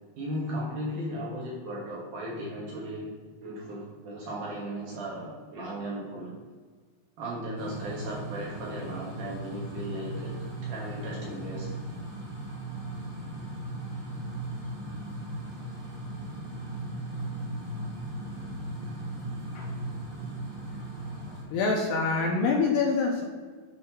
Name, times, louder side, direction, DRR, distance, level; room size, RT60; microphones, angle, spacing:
voice 1, 0.2-3.1 3.4-6.4 7.2-11.7, equal, 70° right, -4 dB, 2.0 m, -36 dB
sound 1, 7.6-21.4, right 1 dB, 40° right, 1.7 m, -37 dB
voice 2, 20.7-23.2, left 4 dB, 80° left, 0 dB, 2.2 m, -27 dB
7.7 x 2.7 x 5.6 m, 1.5 s
omnidirectional pair, 4.5 m